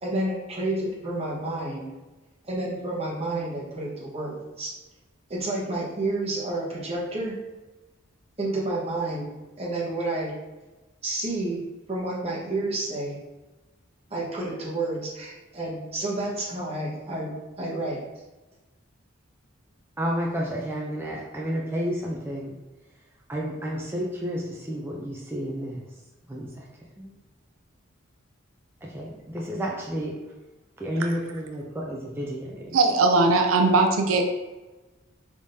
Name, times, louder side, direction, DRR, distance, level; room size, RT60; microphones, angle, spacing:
voice 1, 0.0-1.9 2.5-4.7 5.3-7.3 8.4-10.3 11.0-11.6 11.9-13.2 14.1-18.0, right 2 dB, 30° right, -5 dB, 1.2 m, -30 dB
voice 2, 20.0-22.5 23.3-25.9 26.3-26.7 27.0-27.1 28.8-30.2 30.8-32.8, equal, 10° right, -3 dB, 0.4 m, -31 dB
voice 3, 32.7-34.3, right 3 dB, 85° right, 4 dB, 0.5 m, -19 dB
4.8 x 3.6 x 2.7 m, 1.1 s
head